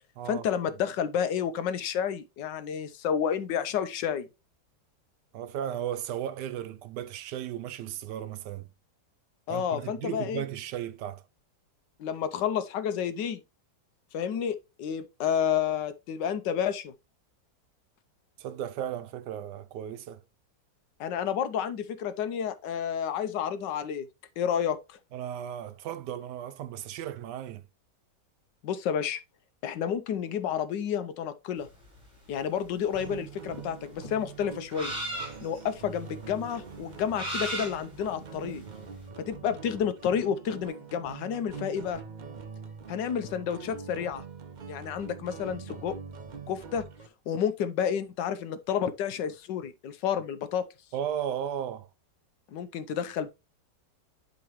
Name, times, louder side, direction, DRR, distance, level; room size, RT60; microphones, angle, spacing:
voice 1, 0.3-4.3 9.5-10.4 12.0-13.4 14.1-16.9 21.0-24.1 24.4-25.0 28.6-29.2 29.6-31.7 32.3-34.9 35.4-38.6 39.2-42.0 42.9-44.2 44.7-46.0 46.5-46.8 47.3-50.6 52.5-53.3, left 8 dB, 90° left, 1.4 m, -30 dB
voice 2, 5.3-8.7 9.5-11.2 18.4-20.2 25.1-27.6 50.9-51.9, right 10 dB, 80° right, 1.2 m, -35 dB
sound 1, 31.7-39.0, right 1 dB, 20° right, 4.5 m, -38 dB
sound 2, 32.9-47.1, right 5 dB, 60° right, 0.4 m, -44 dB
11.0 x 3.8 x 3.1 m
omnidirectional pair, 1.9 m